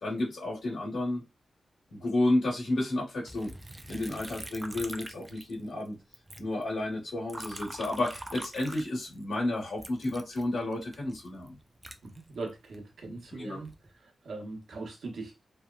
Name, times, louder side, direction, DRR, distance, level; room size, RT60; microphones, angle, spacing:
voice 1, 0.0-1.2 1.9-3.5 3.9-6.0 6.4-11.6 13.4-13.6, left 1 dB, 75° left, 1.3 m, -31 dB
Liquid, 3.3-5.9 6.1-9.3 9.8-12.8 13.4-13.9, right 1 dB, 20° right, 0.3 m, -44 dB
voice 2, 12.0-13.7 13.9-15.5, right 3 dB, 70° right, 0.8 m, -41 dB
2.9 x 2.2 x 2.3 m
wide cardioid pair, 155°, 0 cm